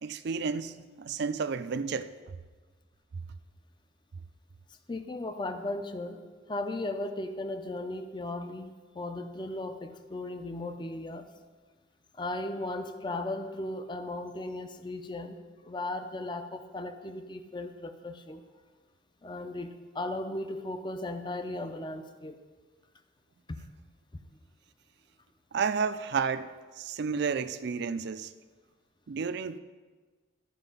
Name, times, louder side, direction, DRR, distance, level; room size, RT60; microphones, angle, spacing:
voice 1, 0.0-2.1 25.5-28.3 29.1-29.6, right 5 dB, 60° right, 0.4 m, -31 dB
voice 2, 4.9-6.2 6.5-11.3 12.1-15.4 15.6-18.4 19.2-22.4 23.5-23.6, left 2 dB, 25° left, 0.5 m, -36 dB
12.5 x 5.0 x 5.4 m
head